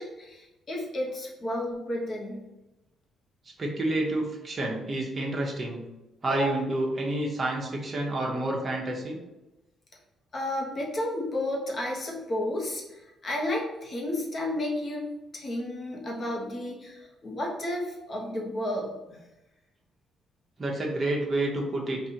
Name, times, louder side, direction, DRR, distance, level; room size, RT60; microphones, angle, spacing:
voice 1, 0.0-2.4 6.3-6.5 10.3-15.1 15.3-18.9, left 1 dB, 40° left, -1 dB, 1.0 m, -32 dB
voice 2, 3.6-5.8 6.2-9.2 20.6-22.0, right 1 dB, 30° right, -1 dB, 0.8 m, -29 dB
4.3 x 2.5 x 2.8 m, 0.99 s
cardioid pair, 90°, 0 cm